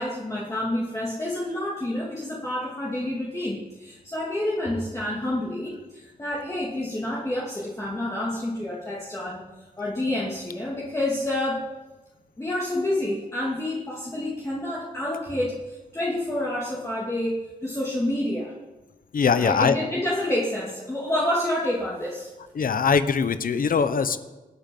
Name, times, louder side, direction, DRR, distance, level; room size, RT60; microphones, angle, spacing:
voice 1, 0.0-9.4 9.8-11.6 12.4-18.5 19.4-22.3, left 1 dB, 20° left, -5 dB, 2.6 m, -28 dB
voice 2, 19.1-19.8 22.6-24.2, left 6 dB, 70° left, 11 dB, 1.0 m, -21 dB
26.5 x 9.2 x 5.5 m, 1.2 s
wide cardioid pair, 155°, 15 cm